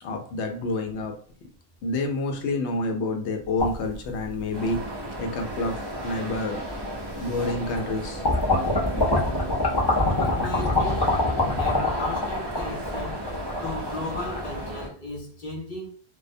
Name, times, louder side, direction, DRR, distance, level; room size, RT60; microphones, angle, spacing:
voice 1, 0.0-1.1 1.8-4.8 5.2-5.7 6.0-6.6 7.2-8.3, left 2 dB, 90° left, 0.9 m, -28 dB
sound 1, 3.6-4.7 5.5-5.6 6.8-6.9 7.3-7.9 8.2-14.7, left 2 dB, 35° left, 0.4 m, -25 dB
sound 2, 4.5-14.9, right 1 dB, 30° right, 0.5 m, -35 dB
voice 2, 6.5-6.9 10.1-11.1 11.5-13.3 13.6-15.9, left 1 dB, 50° left, 0.9 m, -35 dB
Bass guitar, 8.5-12.6, right 8 dB, 85° right, 0.9 m, -43 dB
2.3 x 2.1 x 2.5 m
omnidirectional pair, 1.1 m